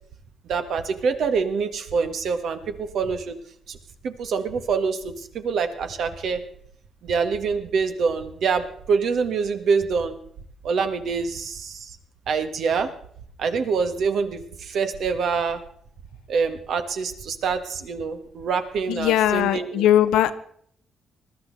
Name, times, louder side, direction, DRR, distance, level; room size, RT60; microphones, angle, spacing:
voice 1, 0.5-3.3 3.7-3.8 4.0-6.4 7.0-10.2 10.6-12.0 12.3-12.9 13.4-15.6 16.3-19.9, right 5 dB, 70° right, 8 dB, 1.6 m, -25 dB
voice 2, 18.9-20.3, left 12 dB, 90° left, 12 dB, 0.8 m, -19 dB
20.5 x 12.5 x 4.1 m, 0.63 s
cardioid pair, 90°, 0 cm